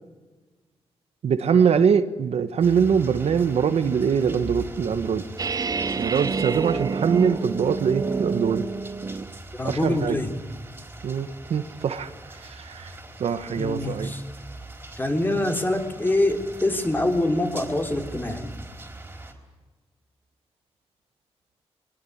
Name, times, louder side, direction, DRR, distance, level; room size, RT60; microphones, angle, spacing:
voice 1, 1.2-5.2 6.0-8.7 9.6-10.2 11.0-12.1 12.4-12.9 13.2-14.1, right 7 dB, 75° right, 11 dB, 1.4 m, -23 dB
sound 1, 2.6-19.3, right 1 dB, 20° right, 4.4 m, -42 dB
sound 2, 5.4-9.4, right 4 dB, 35° right, 0.8 m, -28 dB
voice 2, 9.5-10.4 13.6-14.2 15.0-18.5, left 1 dB, 20° left, 5 dB, 3.6 m, -25 dB
23.5 x 20.5 x 9.5 m, 1.3 s
wide cardioid pair, 110°, 11 cm